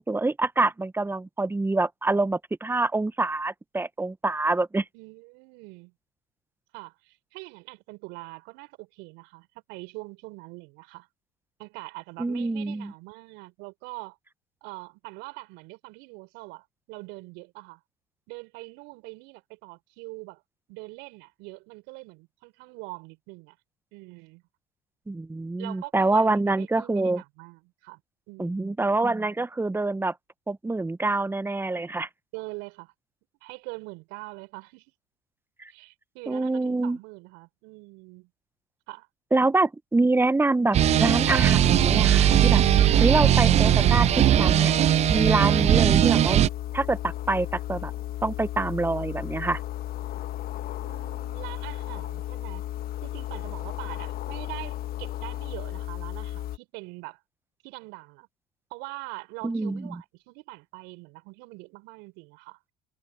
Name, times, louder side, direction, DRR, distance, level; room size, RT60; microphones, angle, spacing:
voice 1, 0.0-4.8 12.2-12.9 25.1-27.2 28.4-30.1 30.5-32.1 35.6-35.7 36.3-37.0 39.3-42.6 43.0-44.7 45.1-46.4 46.7-47.9 48.2-49.6 59.4-59.9, right 2 dB, 10° right, 1.0 m, -26 dB
voice 2, 4.9-5.9 6.7-11.1 11.6-14.2 14.6-17.8 18.3-20.4 20.7-23.6 23.9-24.4 25.6-28.0 28.3-28.7 32.3-32.9 33.4-34.9 35.7-38.3 38.9-39.1 50.8-52.6 53.0-57.2 57.6-58.3 58.7-62.6, right 27 dB, 65° right, 5.4 m, -43 dB
sound 1, 40.7-46.5, right 11 dB, 35° right, 0.4 m, -19 dB
sound 2, 40.8-56.6, left 13 dB, 50° left, 1.2 m, -34 dB
hypercardioid pair, 65°, 19 cm